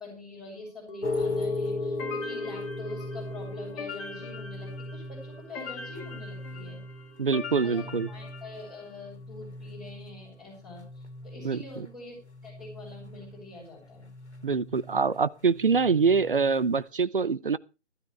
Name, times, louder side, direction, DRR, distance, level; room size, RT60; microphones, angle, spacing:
voice 1, 0.0-6.8 7.6-12.2 12.4-14.1, left 2 dB, ahead, 5.7 m, -45 dB
sound 1, 0.9-11.2 11.4-11.5, right 5 dB, 45° left, 2.8 m, -48 dB
sound 2, 1.0-16.9, left 2 dB, 65° left, 2.3 m, -38 dB
sound 3, 2.0-8.9, left 4 dB, 15° left, 2.3 m, -42 dB
voice 2, 7.2-8.1 11.4-11.9 14.4-17.6, right 5 dB, 50° right, 0.7 m, -25 dB
16.5 x 13.0 x 3.2 m
figure-of-eight pair, 145°, 35 cm